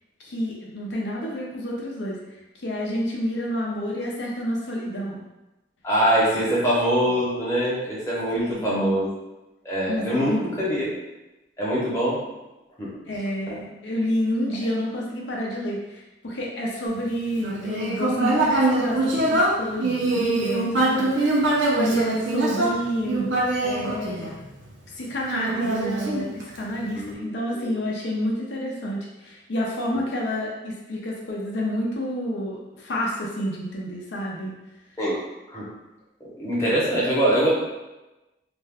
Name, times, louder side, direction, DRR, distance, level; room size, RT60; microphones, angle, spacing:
voice 1, 0.2-2.2 2.5-5.2 6.2-6.3 7.1-7.2 8.3-9.1 9.9-10.9 13.1-23.3 23.6-24.3 25.0-34.6, equal, 75° left, -3 dB, 0.6 m, -29 dB
voice 2, 5.8-9.1 9.6-10.8 11.6-12.2 12.8-12.9 13.5-13.6 27.0-27.2 27.6-27.7 35.0-35.2 35.5-35.7 36.4-37.5, equal, 15° left, -8 dB, 0.8 m, -23 dB
Human voice, 17.4-24.7 25.3-26.8, right 2 dB, 85° right, 0.6 m, -23 dB
2.5 x 2.2 x 3.4 m, 1.0 s
head